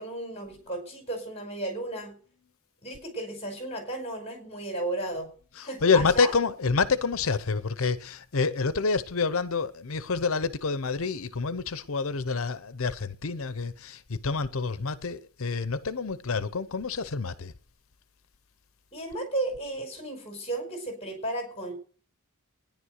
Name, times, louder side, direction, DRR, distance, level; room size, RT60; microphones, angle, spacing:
voice 1, 0.0-2.1 2.8-5.3 5.6-6.3 18.9-21.7, right 1 dB, 30° left, 5.1 m, -34 dB
voice 2, 5.6-17.5, left 4 dB, 70° left, 0.8 m, -28 dB
14.5 x 10.5 x 6.5 m
head